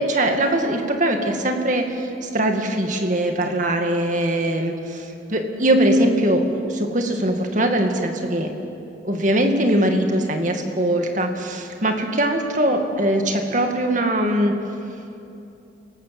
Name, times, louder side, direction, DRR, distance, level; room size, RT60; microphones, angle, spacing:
voice 1, 0.0-8.5 9.0-14.6, right 1 dB, 40° right, 4 dB, 2.2 m, -21 dB
27.5 x 18.5 x 7.7 m, 2.7 s
head